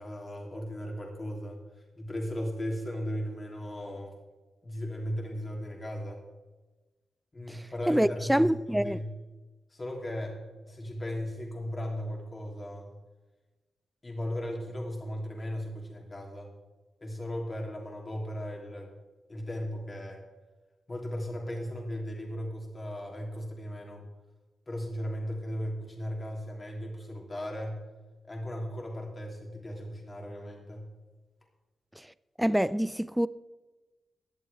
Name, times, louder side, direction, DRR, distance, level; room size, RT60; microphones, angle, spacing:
voice 1, 0.0-1.6 1.9-4.1 4.6-6.2 7.3-9.1 9.7-12.9 14.0-16.5 17.0-18.9 19.3-20.2 20.9-24.0 24.7-27.8 28.3-30.9, equal, 25° left, 3.1 m, -36 dB
voice 2, 7.5-9.0 32.0-32.1 32.4-33.3, equal, 5° right, 0.4 m, -26 dB
17.0 x 11.5 x 3.5 m
wide cardioid pair, 125°, 0 cm